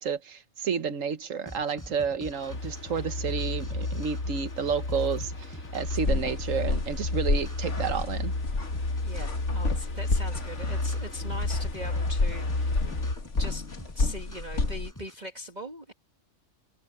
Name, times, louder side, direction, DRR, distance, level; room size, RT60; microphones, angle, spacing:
voice 1, 0.0-8.3, right 6 dB, 70° right, 1.5 m, -31 dB
sound 1, 1.5-15.1, equal, 15° left, 7.3 m, -46 dB
sound 2, 2.5-13.2, left 2 dB, 80° left, 3.0 m, -32 dB
sound 3, 5.9-14.9, left 3 dB, 60° left, 2.4 m, -31 dB
voice 2, 9.0-12.9 13.4-15.9, equal, 30° right, 2.0 m, -41 dB
omnidirectional pair, 1.4 m